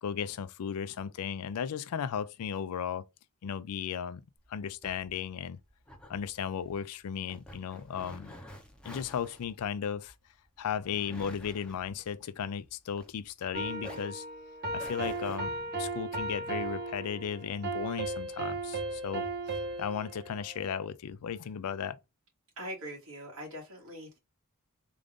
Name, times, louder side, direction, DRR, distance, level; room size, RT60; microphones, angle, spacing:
voice 1, 0.0-3.0 3.4-4.2 4.5-5.6 6.1-8.3 8.8-10.1 10.6-14.2 14.7-22.0, left 7 dB, 85° left, 0.4 m, -35 dB
sound 1, 4.4-13.5 13.8-15.4, left 1 dB, 5° left, 0.7 m, -50 dB
sound 2, 13.5-20.8, right 2 dB, 45° right, 1.3 m, -36 dB
voice 2, 22.6-24.2, equal, 70° right, 2.1 m, -42 dB
3.8 x 2.5 x 3.5 m
head